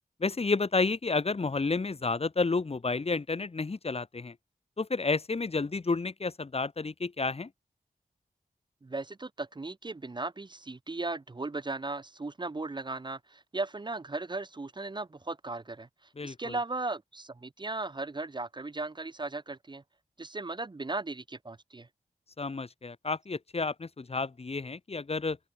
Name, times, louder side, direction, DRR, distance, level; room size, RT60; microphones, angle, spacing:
voice 1, 0.2-4.3 4.8-7.5 16.2-16.6 22.4-25.4, left 3 dB, 40° left, 1.6 m, -31 dB
voice 2, 8.8-15.9 16.2-19.8 20.2-21.9, right 3 dB, 30° right, 0.8 m, -37 dB
open air
wide cardioid pair, 115°, 15 cm